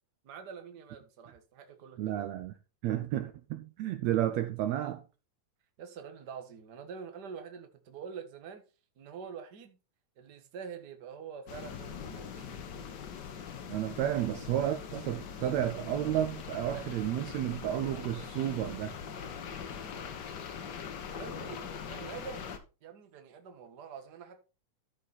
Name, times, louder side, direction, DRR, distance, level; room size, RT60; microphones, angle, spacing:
voice 1, 0.2-2.2 5.8-8.6 9.0-9.8 10.2-12.5 21.1-22.5 22.8-24.4, right 6 dB, 45° right, 1.5 m, -46 dB
voice 2, 2.0-2.5 2.8-5.0 13.7-19.0, right 12 dB, 80° right, 1.7 m, -32 dB
sound 1, 11.5-22.6, left 7 dB, 75° left, 0.9 m, -42 dB
13.0 x 5.3 x 4.1 m
omnidirectional pair, 3.6 m